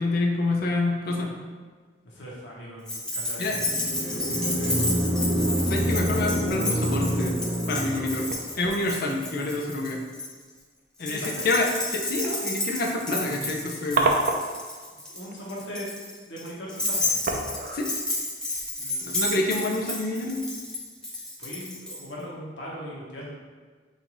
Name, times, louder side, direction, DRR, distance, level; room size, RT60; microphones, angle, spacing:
voice 1, 0.0-1.3 3.4-3.6 5.7-7.4 7.7-8.3 8.6-10.0 11.0-14.0 17.7-17.9 19.0-20.4, left 2 dB, 55° left, 0 dB, 0.6 m, -27 dB
voice 2, 2.0-4.9 11.0-11.5 15.1-15.9 16.3-17.2 18.8-19.1 21.4-23.3, equal, 80° left, -5 dB, 1.2 m, -40 dB
sound 1, 2.5-2.8 5.1-6.2 6.6-6.7 7.3-7.4 8.2-8.9 9.2-9.6 10.6-10.8 11.2-11.3 11.8-11.9 12.2-14.8 15.2-15.5 16.7-16.9 17.2-19.4 19.9-20.2 20.6-20.7, right 3 dB, 55° right, 0.5 m, -31 dB
Keys jangling, 2.9-10.3 11.0-22.0, left 1 dB, 5° left, 0.8 m, -31 dB
sound 2, 3.4-8.4, equal, 30° right, 0.9 m, -27 dB
5.5 x 2.6 x 3.0 m, 1.5 s
head